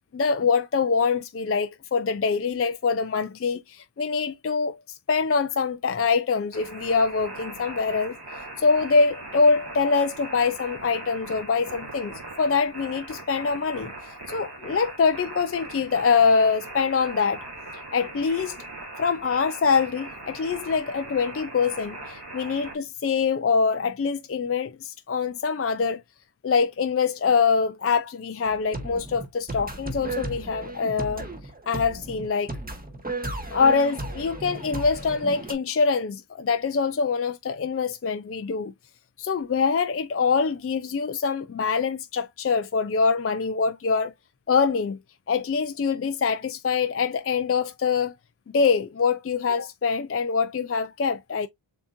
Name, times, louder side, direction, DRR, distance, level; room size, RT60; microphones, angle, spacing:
voice 1, 0.1-4.8 5.1-8.2 8.6-13.9 14.3-17.4 17.9-18.6 19.0-26.0 26.4-31.3 31.7-32.6 33.5-38.7 39.2-44.1 44.5-45.0 45.3-48.2 48.5-51.5, left 5 dB, 30° left, 0.5 m, -24 dB
sound 1, 6.5-22.7, right 2 dB, 50° right, 2.7 m, -40 dB
sound 2, 28.4-35.5, right 2 dB, 15° right, 1.3 m, -35 dB
7.2 x 2.8 x 2.6 m
wide cardioid pair, 105°, 50 cm